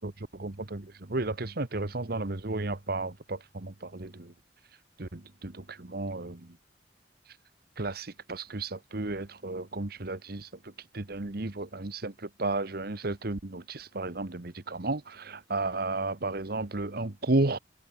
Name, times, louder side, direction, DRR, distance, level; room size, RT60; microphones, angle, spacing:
voice 1, 0.0-4.3 5.0-6.5 7.8-10.5 10.9-17.6, right 2 dB, 60° right, 1.3 m, -33 dB
head